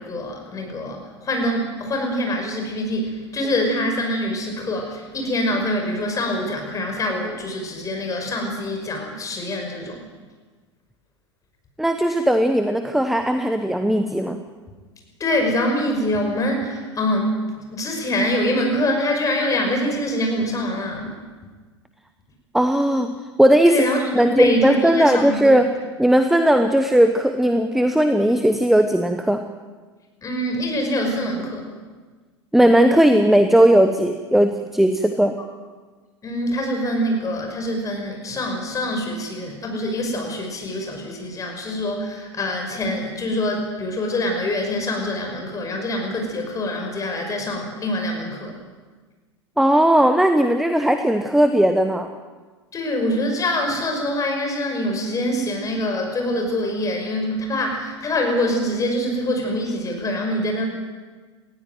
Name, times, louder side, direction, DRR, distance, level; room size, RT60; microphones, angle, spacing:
voice 1, 0.0-10.0 15.2-17.5 17.7-21.2 23.7-25.6 30.2-31.7 36.2-48.6 52.7-60.7, left 1 dB, 20° left, 3 dB, 5.7 m, -25 dB
voice 2, 11.8-14.4 22.5-23.8 24.1-25.7 26.0-29.4 32.5-35.3 49.6-52.1, right 1 dB, ahead, 8 dB, 1.1 m, -17 dB
19.5 x 15.5 x 9.4 m, 1.4 s
figure-of-eight pair, 85°, 15 cm